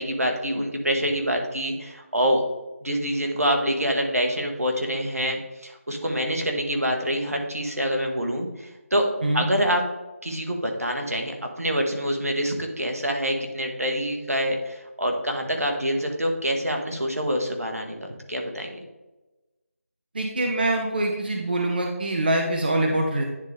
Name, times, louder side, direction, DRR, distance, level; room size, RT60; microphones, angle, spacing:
voice 1, 0.0-2.4 2.8-9.1 9.3-9.8 10.2-18.8, equal, 75° right, 2 dB, 1.7 m, -26 dB
voice 2, 20.1-23.2, right 1 dB, 40° right, 1 dB, 0.8 m, -24 dB
9.9 x 4.1 x 3.4 m, 1.1 s
figure-of-eight pair, 165°, 8 cm